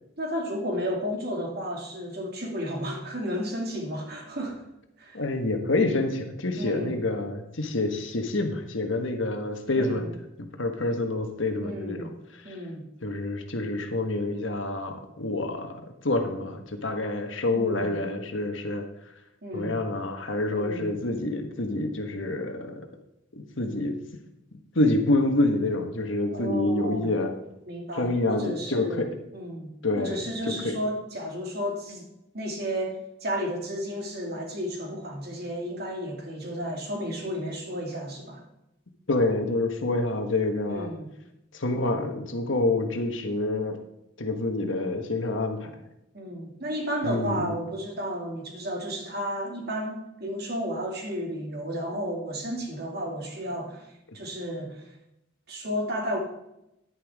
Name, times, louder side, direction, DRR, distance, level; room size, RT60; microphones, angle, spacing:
voice 1, 0.2-4.7 5.0-5.2 6.6-7.0 9.8-10.1 11.6-12.1 12.4-12.8 17.5-17.9 19.4-19.8 20.5-21.0 26.3-27.1 27.7-29.1 29.3-32.1 32.3-38.4 40.7-41.1 46.1-54.9 55.5-56.2, equal, 55° right, 1 dB, 2.3 m, -33 dB
voice 2, 5.1-10.1 10.4-12.6 13.0-18.8 19.5-22.8 23.3-24.0 24.7-27.4 28.0-29.2 29.8-30.2 30.5-30.8 39.1-40.9 41.5-43.8 44.2-45.8 47.0-47.5, left 2 dB, 75° left, 5 dB, 1.4 m, -27 dB
11.0 x 10.0 x 3.6 m, 0.86 s
head